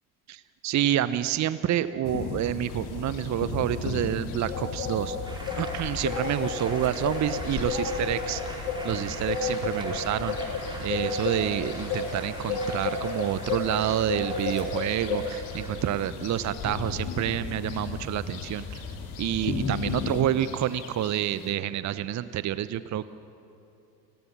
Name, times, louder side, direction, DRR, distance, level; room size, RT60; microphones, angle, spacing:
voice 1, 0.3-5.2 5.6-8.4 8.8-18.8 19.2-23.1, right 11 dB, 35° right, 14 dB, 0.8 m, -28 dB
sound 1, 2.0-20.2, left 5 dB, 50° left, 2.7 m, -37 dB
sound 2, 2.7-21.5, left 4 dB, 70° left, 2.9 m, -34 dB
sound 3, 5.2-19.7, right 1 dB, 10° right, 5.0 m, -44 dB
29.5 x 17.5 x 7.3 m, 2.7 s
hypercardioid pair, 65°, 50 cm